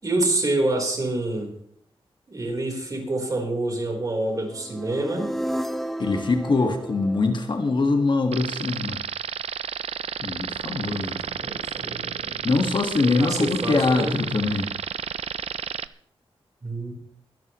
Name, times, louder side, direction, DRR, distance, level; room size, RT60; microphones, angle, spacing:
voice 1, 0.0-1.5 2.3-5.3 10.8-12.4 13.0-14.2 16.6-16.9, right 2 dB, 35° right, 1 dB, 4.1 m, -27 dB
sound 1, 4.5-8.5, right 1 dB, ahead, 0.7 m, -33 dB
voice 2, 6.0-9.0 10.2-11.2 12.4-14.7, left 3 dB, 50° left, 5 dB, 1.7 m, -23 dB
sound 2, 8.3-15.9, right 8 dB, 80° right, 0.5 m, -31 dB
22.5 x 12.5 x 3.1 m, 0.64 s
wide cardioid pair, 135°, 10 cm